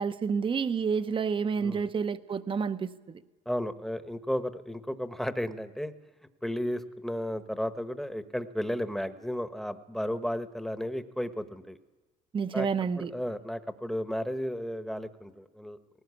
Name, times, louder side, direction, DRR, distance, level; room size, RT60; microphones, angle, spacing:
voice 1, 0.0-3.2 12.3-13.1, right 6 dB, 30° right, 11 dB, 0.8 m, -29 dB
voice 2, 1.6-1.9 3.5-5.9 6.4-11.8 12.5-12.7 12.9-15.8, equal, ahead, 10 dB, 1.1 m, -33 dB
19.5 x 17.5 x 8.3 m, 1.2 s
cardioid pair, 110°, 17 cm